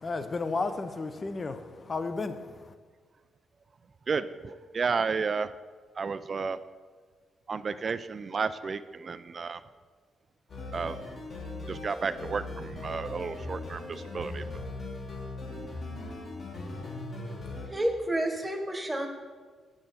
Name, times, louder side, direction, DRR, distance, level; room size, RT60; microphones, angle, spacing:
voice 1, 0.0-2.7, left 3 dB, 35° left, 0.6 m, -33 dB
voice 2, 4.1-5.5 5.9-6.6 7.5-9.6 10.7-11.0 11.7-14.5, right 5 dB, 40° right, 0.3 m, -32 dB
sound 1, 10.5-17.7, left 2 dB, 50° left, 2.1 m, -39 dB
voice 3, 17.2-19.1, right 1 dB, 10° right, 1.1 m, -31 dB
8.6 x 7.8 x 4.1 m
cardioid pair, 100°, 0 cm